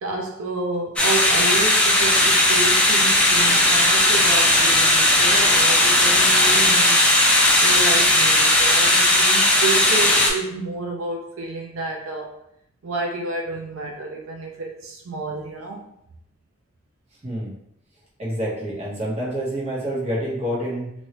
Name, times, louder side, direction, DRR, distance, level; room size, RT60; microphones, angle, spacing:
voice 1, 0.0-7.0 7.6-12.3 12.8-15.9, right 3 dB, 90° right, 0 dB, 0.5 m, -30 dB
sound 1, 1.0-10.3, left 1 dB, 5° left, 0.4 m, -17 dB
voice 2, 17.2-17.5 18.2-20.9, equal, 30° right, -6 dB, 1.1 m, -27 dB
3.1 x 2.7 x 2.9 m, 0.76 s
head